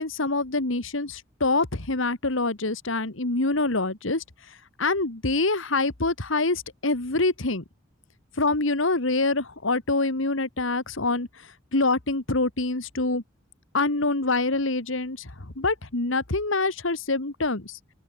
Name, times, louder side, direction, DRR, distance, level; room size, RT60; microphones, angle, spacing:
voice 1, 0.0-7.6 8.4-13.2 13.7-17.8, left 3 dB, 80° left, 2.1 m, -26 dB
open air
head